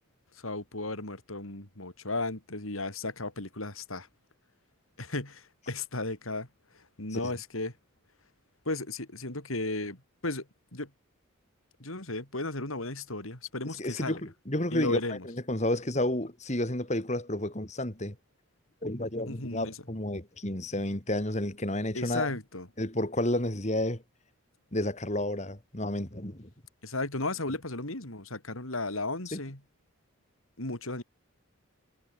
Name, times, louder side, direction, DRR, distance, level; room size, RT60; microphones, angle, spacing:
voice 1, 0.3-4.1 5.0-6.5 6.7-7.7 8.6-10.5 10.7-10.9 11.8-14.2 14.7-15.3 19.3-19.8 21.9-22.7 26.8-29.6 30.6-31.0, left 2 dB, 85° left, 4.9 m, -35 dB
voice 2, 13.8-14.2 14.5-18.1 18.8-22.3 22.8-24.0 24.7-26.5 29.3-29.4, left 1 dB, 35° left, 3.0 m, -31 dB
head